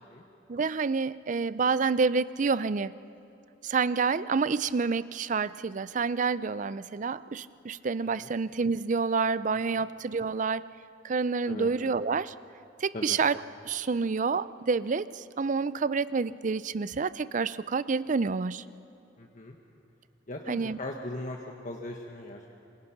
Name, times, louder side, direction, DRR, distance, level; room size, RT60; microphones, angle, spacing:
voice 1, 0.5-2.9 3.6-10.7 11.0-12.3 12.8-13.4 13.6-18.7 20.5-20.8, right 4 dB, 45° right, 16 dB, 0.5 m, -28 dB
voice 2, 19.2-19.6 20.3-22.5, left 1 dB, 45° left, 1 dB, 1.5 m, -39 dB
26.5 x 26.5 x 5.9 m, 2.7 s
head